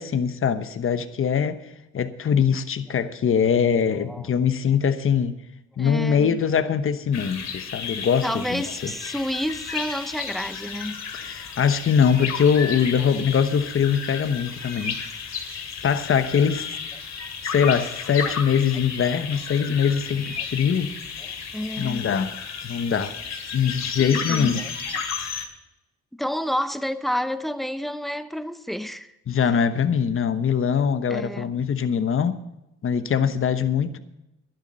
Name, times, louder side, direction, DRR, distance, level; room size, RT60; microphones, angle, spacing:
voice 1, 0.0-1.6 1.9-5.3 5.8-8.9 11.1-15.0 15.8-16.7 17.4-20.9 21.8-22.3 22.6-23.2 23.5-24.6 29.3-32.4 32.8-34.0, left 7 dB, 45° left, 1.0 m, -22 dB
voice 2, 4.0-4.3 5.8-6.4 8.2-11.0 13.1-13.2 18.2-18.3 20.4-20.5 21.2-22.0 24.3-24.7 26.1-29.1 31.1-31.5, equal, ahead, 0.7 m, -30 dB
sound 1, 7.1-25.5, left 6 dB, 60° left, 2.4 m, -33 dB
12.0 x 10.5 x 5.6 m
cardioid pair, 90°, 30 cm